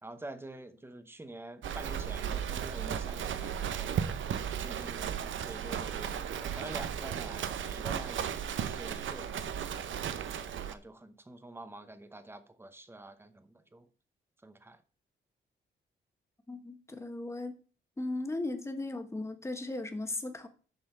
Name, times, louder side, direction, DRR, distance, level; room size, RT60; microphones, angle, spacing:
voice 1, 0.0-9.4 9.9-10.1 10.6-13.9 14.4-14.8, right 2 dB, 10° right, 0.8 m, -47 dB
Livestock farm animals working animals, 1.6-10.7, right 8 dB, 75° right, 0.8 m, -35 dB
voice 2, 16.5-17.5 18.0-20.5, left 2 dB, 15° left, 1.2 m, -37 dB
7.3 x 5.5 x 6.5 m
wide cardioid pair, 140°, 20 cm